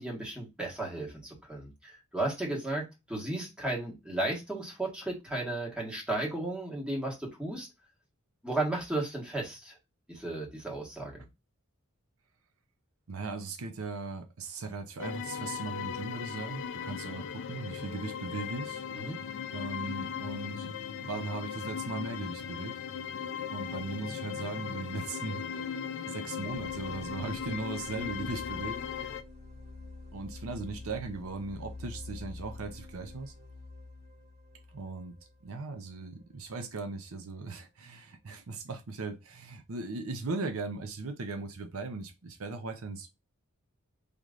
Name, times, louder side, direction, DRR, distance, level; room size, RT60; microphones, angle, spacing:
voice 1, 0.0-7.7 8.4-9.8 10.1-11.2 18.9-19.2, right 2 dB, 5° right, 1.5 m, -34 dB
voice 2, 13.1-18.8 19.5-20.7 21.0-22.8 23.5-25.7 26.1-28.8 30.1-33.3 34.7-35.1 35.4-43.1, right 3 dB, 70° right, 0.6 m, -38 dB
sound 1, 15.0-29.2, left 7 dB, 60° left, 0.4 m, -38 dB
sound 2, 26.4-36.2, left 2 dB, 55° right, 2.3 m, -47 dB
5.0 x 3.1 x 2.5 m
head